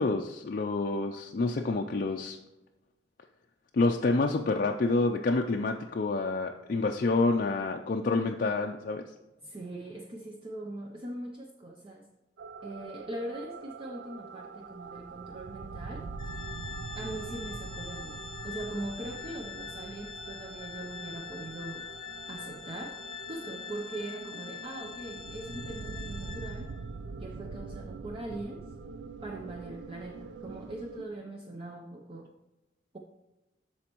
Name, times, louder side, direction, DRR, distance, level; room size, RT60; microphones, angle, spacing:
voice 1, 0.0-2.4 3.7-9.0, left 3 dB, 50° left, 2 dB, 0.4 m, -28 dB
voice 2, 9.4-12.1 12.6-16.1 16.9-21.9 22.3-23.0 23.3-26.7 27.2-28.7 29.2-32.3, right 1 dB, 30° right, 1 dB, 0.6 m, -41 dB
sound 1, 12.4-31.0, right 4 dB, 70° right, 0.4 m, -43 dB
Organ, 16.2-26.8, left 7 dB, 25° left, 1.0 m, -44 dB
13.0 x 4.3 x 3.0 m, 1.0 s
head